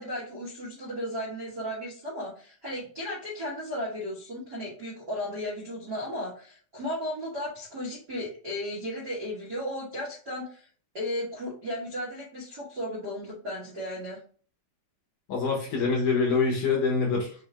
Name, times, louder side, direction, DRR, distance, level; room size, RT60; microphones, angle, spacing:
voice 1, 0.0-10.7 10.9-14.2, left 1 dB, 60° right, -7 dB, 1.0 m, -35 dB
voice 2, 15.3-17.3, left 4 dB, 65° left, -2 dB, 2.1 m, -25 dB
5.8 x 2.6 x 3.3 m, 0.43 s
omnidirectional pair, 4.5 m